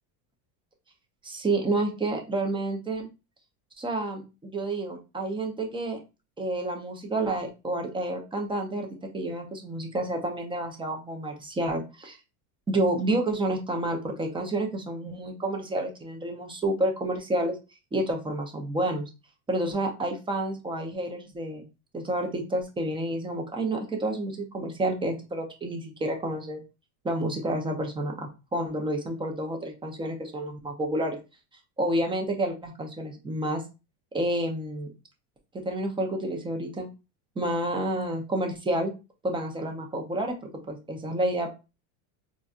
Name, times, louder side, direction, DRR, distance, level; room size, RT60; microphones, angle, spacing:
voice 1, 1.2-3.1 3.8-6.0 6.4-12.2 12.7-17.6 17.9-19.1 19.5-21.6 21.9-26.6 27.0-31.2 31.8-33.6 34.1-34.9 35.5-36.9 37.4-38.9 39.2-40.4 40.7-41.5, right 1 dB, 10° right, 2 dB, 0.4 m, -29 dB
4.0 x 2.5 x 2.3 m, 0.28 s
supercardioid pair, 130°, 47 cm